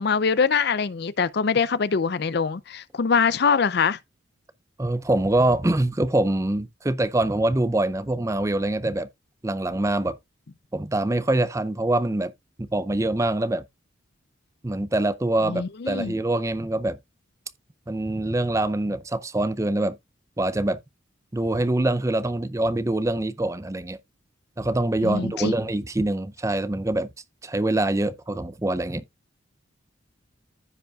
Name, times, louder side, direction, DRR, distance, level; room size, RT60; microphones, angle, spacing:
voice 1, 0.0-4.0 15.4-16.1 25.0-25.5, left 5 dB, 55° left, 0.5 m, -23 dB
voice 2, 4.8-9.1 9.4-10.2 10.7-12.3 12.6-13.6 14.6-17.0 17.9-20.0 20.4-20.8 21.3-24.0 24.6-27.1 27.4-29.0, right 1 dB, 15° right, 0.5 m, -24 dB
15.0 x 5.2 x 2.4 m
head